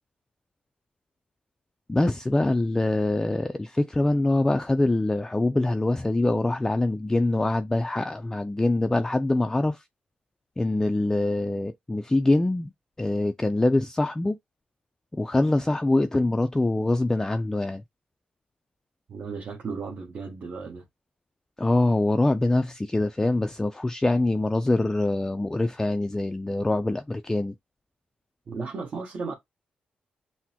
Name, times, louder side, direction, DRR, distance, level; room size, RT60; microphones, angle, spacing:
voice 1, 1.9-9.8 10.6-12.7 13.0-14.4 15.1-17.8 21.6-27.5, left 2 dB, 15° left, 0.4 m, -24 dB
voice 2, 19.1-20.8 28.5-29.3, right 4 dB, 55° right, 1.1 m, -35 dB
5.9 x 2.1 x 2.8 m
cardioid pair, 80°, 3 cm